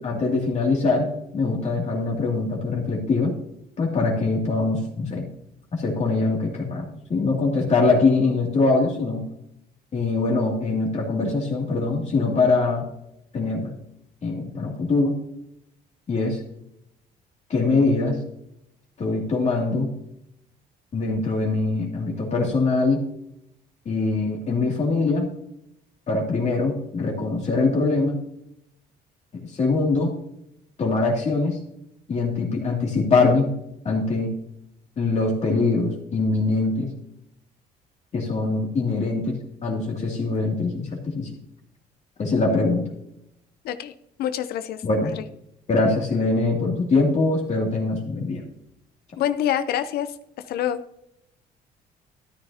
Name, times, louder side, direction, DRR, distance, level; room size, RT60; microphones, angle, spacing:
voice 1, 0.0-3.3 3.8-5.3 5.7-9.2 9.9-12.9 13.3-13.7 14.2-15.1 16.1-16.4 17.5-18.2 19.0-19.9 20.9-23.0 23.9-25.3 26.1-28.2 29.5-30.1 30.8-31.6 32.1-33.5 33.8-34.3 35.0-36.9 38.1-41.3 42.2-42.8 44.8-45.1 45.7-48.4, left 3 dB, 40° left, -1 dB, 2.5 m, -23 dB
voice 2, 44.2-45.2 49.2-50.2 50.5-50.8, left 10 dB, 70° left, 10 dB, 0.6 m, -26 dB
13.0 x 9.6 x 2.8 m, 0.79 s
cardioid pair, 110°, 17 cm